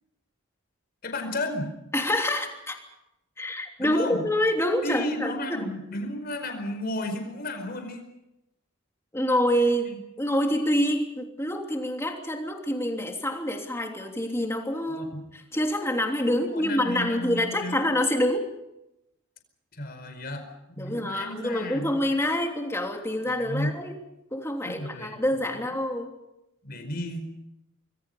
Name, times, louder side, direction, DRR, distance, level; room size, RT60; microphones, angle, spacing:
voice 1, 1.0-1.7 3.8-4.2 4.8-8.0 9.9-10.0 14.9-15.2 16.3-17.8 19.8-22.0 23.4-23.8 24.6-25.6 26.6-27.3, left 1 dB, 45° left, 6 dB, 4.9 m, -33 dB
voice 2, 1.9-2.8 3.4-5.7 9.1-9.9 10.2-18.4 20.8-23.9 24.3-26.1, left 1 dB, 15° left, 2 dB, 3.1 m, -26 dB
27.0 x 22.5 x 5.5 m, 0.88 s
head